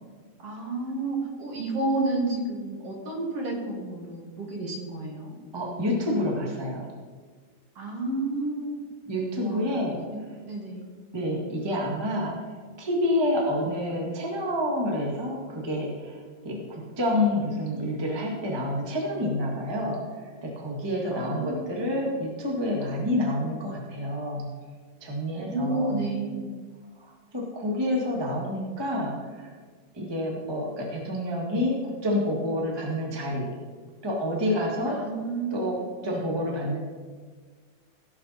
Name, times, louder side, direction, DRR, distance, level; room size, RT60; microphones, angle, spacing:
voice 1, 0.4-5.4 7.8-8.8 9.4-10.2 10.5-10.9 21.1-21.6 21.9-22.2 25.3-26.5 34.8-35.6, right 2 dB, 50° right, -1 dB, 2.4 m, -31 dB
voice 2, 5.5-6.9 9.0-10.0 11.1-12.3 12.8-24.5 25.0-26.1 27.0-29.5 29.9-33.5 34.0-35.0 35.5-36.8, left 1 dB, 20° right, -2 dB, 0.6 m, -28 dB
17.5 x 5.8 x 4.1 m, 1.5 s
omnidirectional pair, 4.0 m